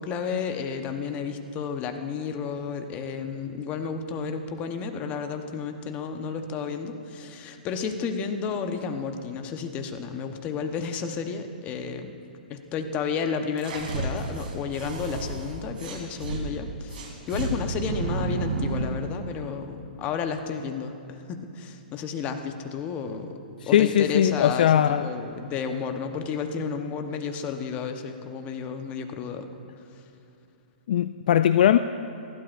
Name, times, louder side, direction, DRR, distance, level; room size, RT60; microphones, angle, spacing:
voice 1, 0.0-12.1 12.5-23.3 23.7-29.5, left 6 dB, 30° left, 6 dB, 1.0 m, -32 dB
sound 1, 13.6-16.4 16.9-19.0, right 3 dB, 70° right, 2.9 m, -31 dB
voice 2, 23.6-25.1 30.9-31.8, left 10 dB, 60° left, 11 dB, 0.3 m, -20 dB
28.0 x 12.0 x 2.6 m, 2.6 s
hypercardioid pair, 135°, 5 cm